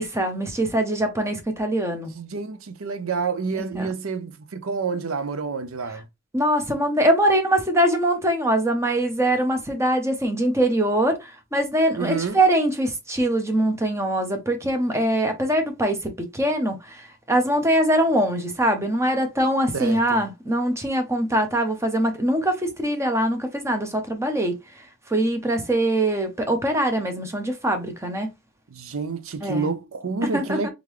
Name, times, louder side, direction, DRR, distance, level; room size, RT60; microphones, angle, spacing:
voice 1, 0.0-2.1 3.7-3.9 6.3-24.6 25.1-28.3 29.4-29.7 30.3-30.7, right 1 dB, 15° right, 0.8 m, -23 dB
voice 2, 2.1-6.0 12.0-12.4 19.7-20.2 28.7-30.7, right 4 dB, 85° right, 0.6 m, -28 dB
3.7 x 3.5 x 3.1 m
head